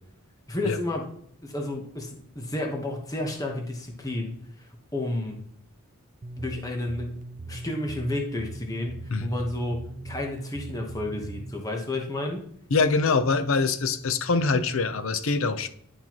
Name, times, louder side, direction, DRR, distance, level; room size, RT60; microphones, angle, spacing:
voice 1, 0.5-1.1 1.4-4.3 4.6-5.4 6.4-7.2 7.5-9.8 10.0-12.5, left 1 dB, 15° left, 1 dB, 1.1 m, -31 dB
sound 1, 6.2-11.6, right 2 dB, 35° right, 0.4 m, -40 dB
voice 2, 12.7-15.7, left 4 dB, 65° left, 11 dB, 0.6 m, -24 dB
11.0 x 4.4 x 3.0 m, 0.66 s
head